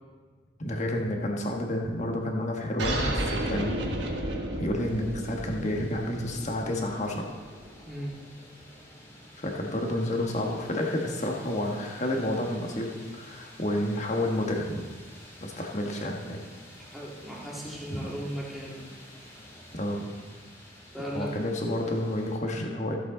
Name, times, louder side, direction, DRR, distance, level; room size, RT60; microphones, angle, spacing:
voice 1, 0.6-3.9 4.6-7.2 9.4-14.8 15.4-16.4 17.9-18.0 19.7-20.1 21.1-23.0, left 1 dB, 40° left, 1 dB, 1.4 m, -30 dB
sound 1, 2.8-7.8, right 1 dB, 65° right, 1.4 m, -33 dB
sound 2, 4.8-22.4, left 1 dB, 15° left, 2.2 m, -50 dB
voice 2, 7.8-8.2 16.8-18.8 20.9-21.3, equal, ahead, -6 dB, 2.2 m, -37 dB
14.5 x 7.7 x 3.9 m, 1.5 s
head